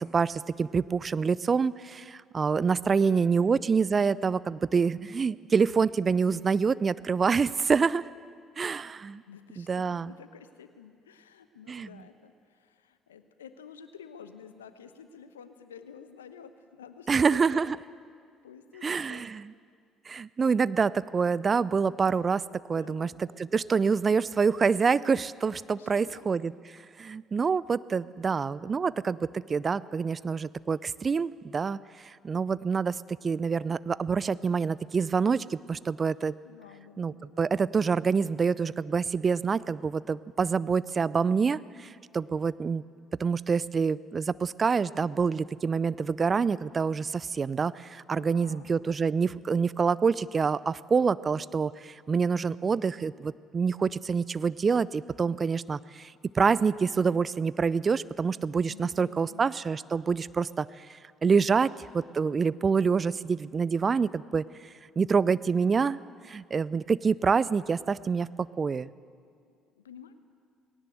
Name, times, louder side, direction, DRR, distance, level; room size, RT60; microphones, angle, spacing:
voice 1, 0.0-8.1 8.6-9.2 9.6-10.1 11.7-11.9 17.1-17.8 18.8-19.5 20.1-22.4 22.7-29.2 29.5-33.0 33.2-36.3 37.0-42.8 43.2-60.9 61.2-64.4 65.0-66.0 66.3-68.9, right 5 dB, 35° right, 19 dB, 0.5 m, -26 dB
voice 2, 2.8-3.9 9.3-17.8 18.4-19.3 22.8-23.2 25.6-26.3 28.2-28.3 28.6-28.9 36.4-37.5 48.2-48.7 58.7-59.4 69.4-70.1, left 7 dB, 90° left, 11 dB, 0.9 m, -50 dB
19.0 x 17.5 x 7.9 m, 2.1 s
hypercardioid pair, 55°, 0 cm